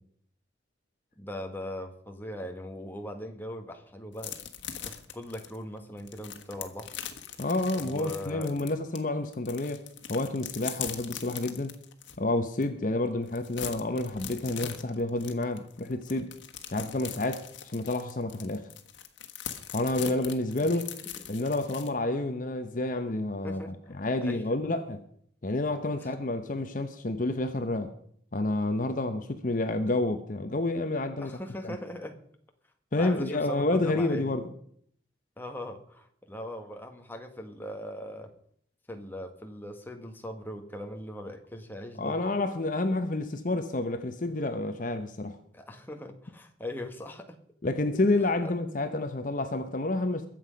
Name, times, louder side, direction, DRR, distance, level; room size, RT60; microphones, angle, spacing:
voice 1, 1.2-4.4 4.8-6.9 7.7-8.6 23.4-23.9 24.2-24.4 26.0-26.1 31.2-32.2 33.0-34.3 35.4-38.3 38.9-42.2 45.5-47.4 47.9-48.0 48.4-48.5, left 1 dB, 10° left, 1.4 m, -40 dB
sound 1, 4.2-9.0 9.3-12.2 12.6-12.7 13.0-21.9, left 9 dB, 80° left, 1.4 m, -41 dB
voice 2, 7.4-9.8 10.1-11.8 12.2-16.4 16.7-18.7 19.7-20.9 21.3-25.0 25.4-27.9 28.3-31.3 31.6-31.8 32.9-34.4 42.0-45.4 47.6-50.3, left 2 dB, 45° left, 0.8 m, -29 dB
22.0 x 7.7 x 5.2 m
head